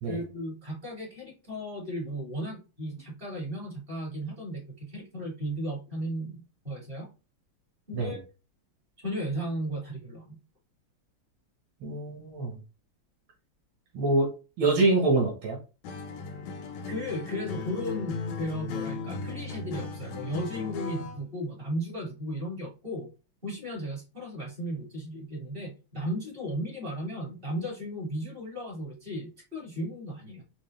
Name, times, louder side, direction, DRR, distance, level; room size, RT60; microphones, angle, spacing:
voice 1, 0.1-7.1 7.9-8.2 9.0-10.3 16.9-23.1 23.4-30.4, equal, 25° right, -4 dB, 2.6 m, -35 dB
voice 2, 11.8-12.5 13.9-14.3 14.6-15.6, right 2 dB, 70° right, -1 dB, 2.0 m, -25 dB
Acoustic guitar, 15.8-21.2, left 4 dB, 85° left, 1.6 m, -36 dB
5.4 x 2.8 x 3.3 m, 0.32 s
omnidirectional pair, 2.3 m